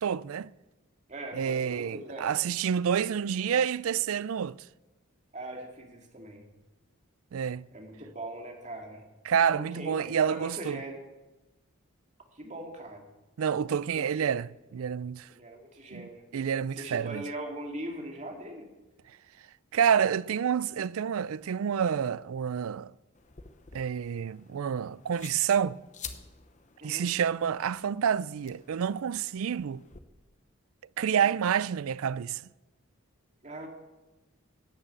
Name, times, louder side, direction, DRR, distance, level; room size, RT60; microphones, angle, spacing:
voice 1, 0.0-0.5 1.3-4.6 7.3-7.6 9.2-10.8 13.4-15.3 15.9-16.0 16.3-17.2 19.7-22.9 23.7-25.8 26.8-29.8 31.0-32.4, right 8 dB, 75° right, 0.4 m, -28 dB
voice 2, 1.1-2.3 5.3-6.5 7.7-9.0 9.5-11.0 12.3-13.0 13.9-14.3 15.3-16.2 16.7-18.7 26.8-27.1 33.4-33.7, right 1 dB, 35° right, 2.4 m, -40 dB
sound 1, 23.2-30.0, left 6 dB, 35° left, 0.9 m, -50 dB
13.0 x 9.0 x 8.6 m
head